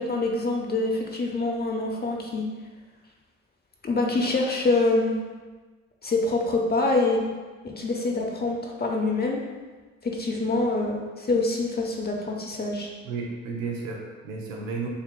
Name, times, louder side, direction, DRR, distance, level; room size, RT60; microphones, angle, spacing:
voice 1, 0.0-2.5 3.8-5.2 6.0-7.2 7.6-9.4 10.0-12.9, left 2 dB, 25° left, 0 dB, 0.8 m, -25 dB
voice 2, 13.0-14.9, right 4 dB, 80° right, 0 dB, 0.9 m, -33 dB
6.5 x 3.2 x 2.2 m, 1.3 s
hypercardioid pair, 55°, 39 cm